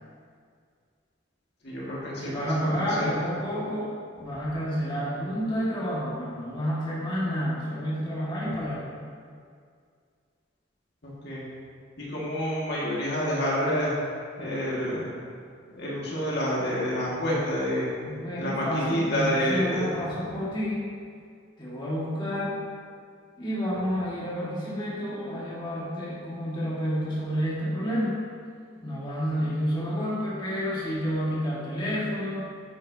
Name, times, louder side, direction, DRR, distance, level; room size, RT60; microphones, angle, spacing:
voice 1, 1.6-3.1 11.0-11.4 12.0-13.9 14.4-15.1 15.7-17.9 18.4-19.9, equal, 55° left, -6 dB, 1.9 m, -28 dB
voice 2, 2.2-3.9 4.2-8.9 18.0-20.9 21.6-22.6 23.4-28.2 28.8-32.4, equal, 25° left, -8 dB, 1.8 m, -29 dB
9.7 x 9.5 x 2.8 m, 2.2 s
head